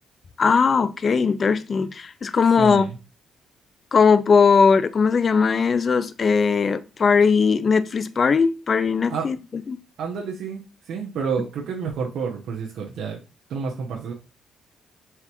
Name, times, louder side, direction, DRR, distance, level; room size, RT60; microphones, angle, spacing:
voice 1, 0.4-2.9 3.9-9.8, left 5 dB, 40° left, 0.4 m, -19 dB
voice 2, 2.6-3.0 9.1-9.3 10.0-13.2 13.5-14.1, right 6 dB, 75° right, 0.9 m, -29 dB
4.7 x 3.4 x 3.0 m
cardioid pair, 90°, 0 cm